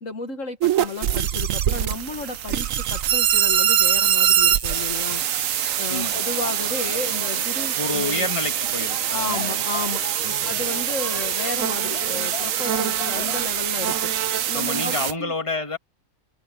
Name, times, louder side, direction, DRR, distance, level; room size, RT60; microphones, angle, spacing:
voice 1, 0.0-5.2 5.8-8.3 9.1-10.0 10.5-14.1 14.5-15.3, left 4 dB, 55° left, 1.8 m, -32 dB
sound 1, 0.6-15.1, right 10 dB, 65° right, 1.1 m, -23 dB
sound 2, 2.9-7.5, right 6 dB, 45° right, 0.4 m, -38 dB
voice 2, 5.9-6.2 7.7-9.6 10.2-10.6 14.5-15.8, left 3 dB, 20° left, 2.3 m, -29 dB
sound 3, 6.0-13.4, left 3 dB, 35° left, 3.1 m, -38 dB
omnidirectional pair, 1.6 m